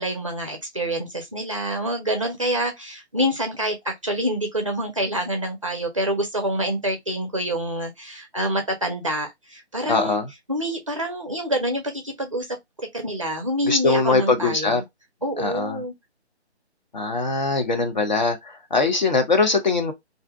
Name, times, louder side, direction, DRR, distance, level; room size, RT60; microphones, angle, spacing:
voice 1, 0.0-10.2 10.5-12.6 12.9-14.8 15.2-15.9, right 1 dB, 30° right, 0.5 m, -27 dB
voice 2, 9.9-10.3 13.6-14.8 15.4-15.8 16.9-19.9, left 4 dB, 40° left, 0.6 m, -21 dB
2.6 x 2.1 x 3.6 m
figure-of-eight pair, 150°, 34 cm